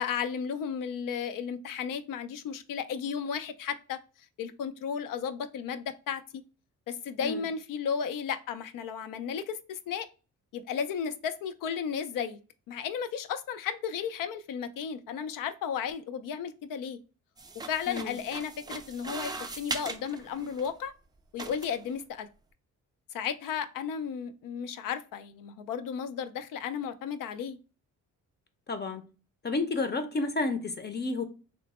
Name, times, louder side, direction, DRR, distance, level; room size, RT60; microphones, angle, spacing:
voice 1, 0.0-4.0 4.4-6.2 6.9-10.1 10.5-12.4 12.7-17.0 17.7-20.9 21.3-22.3 23.1-27.6, left 7 dB, 85° left, 0.5 m, -34 dB
sound 1, 17.4-20.7 21.4-21.9, right 3 dB, 15° right, 0.4 m, -40 dB
voice 2, 17.9-18.2 28.7-29.0 29.4-31.2, left 3 dB, 30° left, 0.6 m, -31 dB
3.1 x 2.0 x 4.1 m
cardioid pair, 100°, 32 cm